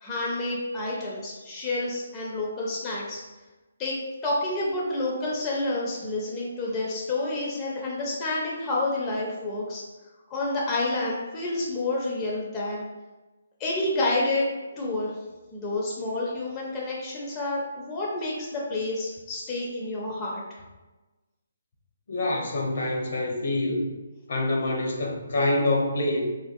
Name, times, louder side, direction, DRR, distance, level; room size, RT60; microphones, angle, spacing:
voice 1, 0.0-3.2 3.8-3.9 4.2-9.8 10.3-12.8 13.6-15.1 15.5-20.4, left 2 dB, 20° left, -4 dB, 0.5 m, -29 dB
voice 2, 22.1-23.9 24.3-26.2, left 2 dB, 60° left, 0 dB, 0.7 m, -26 dB
3.4 x 2.4 x 2.6 m, 1.1 s
hypercardioid pair, 160°, 0 cm